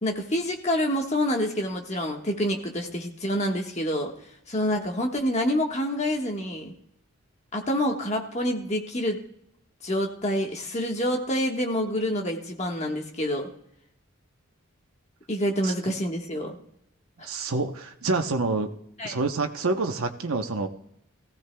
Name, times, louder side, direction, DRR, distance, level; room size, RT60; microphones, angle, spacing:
voice 1, 0.0-4.1 4.5-6.7 7.5-9.2 9.8-13.5 15.3-16.5 17.2-17.3 19.0-19.2, equal, 30° left, 2 dB, 1.4 m, -27 dB
voice 2, 17.2-18.7 19.0-20.7, right 3 dB, 75° right, 5 dB, 0.9 m, -27 dB
18.5 x 15.5 x 2.3 m, 0.74 s
head